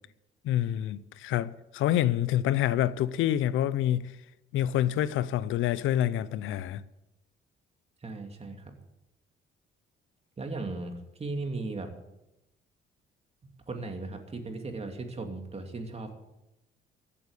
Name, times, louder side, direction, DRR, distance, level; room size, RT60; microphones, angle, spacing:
voice 1, 0.4-4.2 4.5-6.8, left 12 dB, 85° left, 0.6 m, -27 dB
voice 2, 8.0-8.7 10.4-10.9 11.2-11.9 13.7-16.1, right 3 dB, 30° right, 2.8 m, -36 dB
15.0 x 8.8 x 8.3 m
cardioid pair, 90°, 20 cm